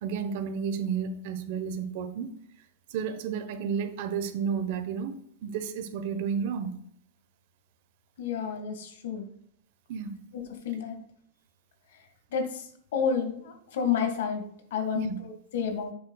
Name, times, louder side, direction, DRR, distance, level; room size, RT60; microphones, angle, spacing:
voice 1, 0.0-2.3 2.9-6.8 9.9-10.2 14.9-15.2, right 6 dB, 55° right, 1.0 m, -32 dB
voice 2, 8.2-9.3 10.3-11.0 12.3-15.9, left 7 dB, 70° left, 1.8 m, -30 dB
8.8 x 7.3 x 2.3 m
supercardioid pair, 150°, 0 cm